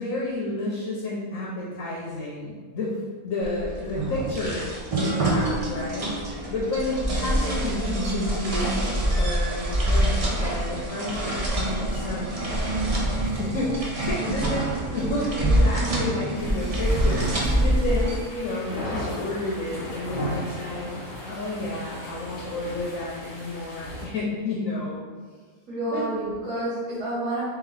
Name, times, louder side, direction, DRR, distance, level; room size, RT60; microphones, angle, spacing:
voice 1, 0.0-4.7 5.0-6.2 6.5-8.8 9.1-12.5 13.2-20.9 21.2-25.0 25.9-26.0, left 2 dB, 70° left, -5 dB, 1.0 m, -31 dB
sound 1, 3.4-18.2, right 1 dB, 50° right, 0.4 m, -25 dB
voice 2, 14.2-14.7 14.9-15.3 25.7-27.4, right 1 dB, 80° right, -12 dB, 2.1 m, -30 dB
sound 2, 16.4-24.1, left 1 dB, 45° left, 0.9 m, -36 dB
3.6 x 3.2 x 3.3 m, 1.5 s
omnidirectional pair, 1.5 m